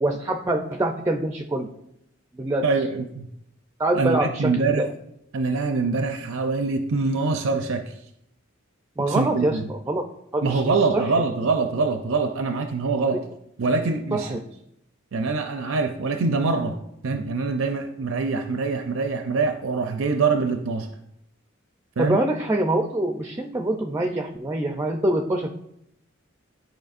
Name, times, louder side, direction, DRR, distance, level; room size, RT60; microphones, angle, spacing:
voice 1, 0.0-1.7 2.3-2.6 3.8-4.9 9.0-10.0 10.3-11.1 14.1-14.4 22.0-25.5, right 1 dB, 15° right, 4 dB, 0.4 m, -25 dB
voice 2, 2.6-3.2 3.9-4.8 5.3-7.9 9.1-9.6 10.4-13.2 13.6-14.4 15.1-16.7 17.0-20.9 22.0-22.2, right 4 dB, 75° right, 6 dB, 0.5 m, -24 dB
12.0 x 4.7 x 2.5 m, 0.79 s
head